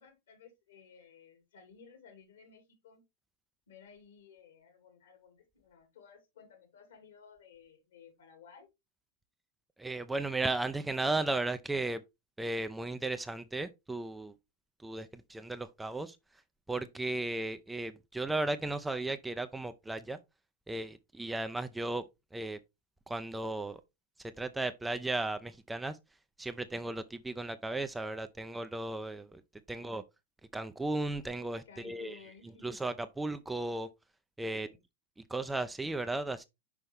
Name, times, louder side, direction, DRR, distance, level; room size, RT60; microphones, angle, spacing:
voice 1, 0.0-3.0 3.7-8.7 29.7-30.0 31.7-32.7 34.5-34.8, left 6 dB, 65° left, 2.4 m, -56 dB
voice 2, 9.8-12.0 12.4-14.3 14.8-16.2 16.7-20.2 20.7-22.0 22.3-22.6 23.1-23.8 24.4-26.0 26.4-29.4 29.7-30.0 30.5-32.1 32.6-33.9 34.4-34.7 35.3-36.4, right 2 dB, 5° right, 0.5 m, -35 dB
5.9 x 5.3 x 3.4 m
figure-of-eight pair, 90°, 0 cm